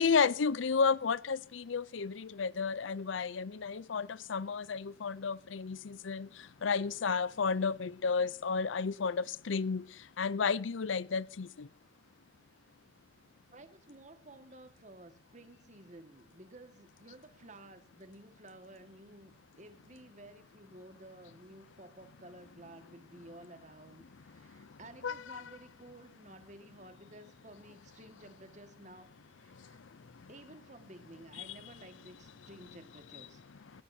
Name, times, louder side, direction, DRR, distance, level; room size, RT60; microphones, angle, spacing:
voice 1, 0.0-6.3 6.6-9.8 10.2-11.5 25.0-25.4, left 5 dB, 80° left, 0.6 m, -32 dB
voice 2, 13.5-29.8 30.3-33.7, right 1 dB, 40° right, 1.9 m, -54 dB
18.0 x 17.0 x 2.8 m
head